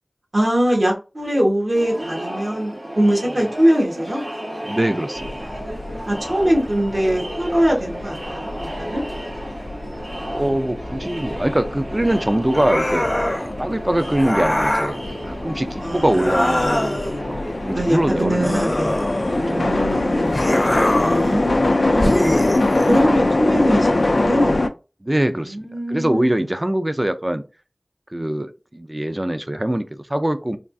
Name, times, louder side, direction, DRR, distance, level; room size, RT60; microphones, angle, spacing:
voice 1, 0.3-4.2 6.1-9.0 15.8-16.8 17.7-19.0 19.3-20.5 21.0-22.4 22.8-24.6 25.4-26.6, equal, 60° right, 1.3 m, -22 dB
Crowd, 1.7-21.7, equal, 75° right, 1.7 m, -33 dB
voice 2, 4.6-5.3 10.3-13.1 13.6-15.0 15.2-18.5 19.3-20.0 25.0-25.6 25.9-27.4 28.1-30.6, right 1 dB, 30° right, 0.4 m, -23 dB
sound 1, 5.2-24.7, left 2 dB, 90° left, 0.3 m, -24 dB
sound 2, 12.5-13.5 14.2-15.0 16.1-17.2 18.4-19.6 20.3-21.3 22.0-23.0, left 1 dB, 35° left, 0.5 m, -22 dB
3.4 x 2.4 x 2.5 m
wide cardioid pair, 45°, 0 cm